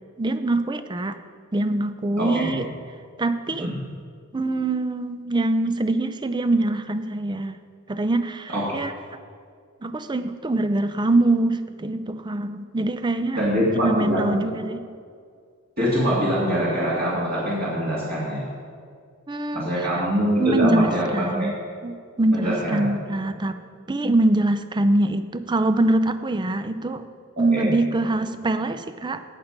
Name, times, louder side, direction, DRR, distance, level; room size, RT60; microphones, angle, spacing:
voice 1, 0.2-1.2 1.5-2.7 3.2-3.7 4.3-7.6 7.9-8.9 9.8-13.4 13.8-14.9 19.3-19.9 20.4-21.5 21.8-23.6 23.9-27.1 27.4-29.2, right 2 dB, 20° right, 11 dB, 0.5 m, -23 dB
voice 2, 2.2-2.5 3.6-3.7 8.5-8.7 13.4-14.3 15.8-18.4 19.5-21.5 22.3-22.9 27.5-27.7, equal, 45° right, -8 dB, 2.5 m, -24 dB
17.5 x 6.0 x 5.2 m, 2.1 s
head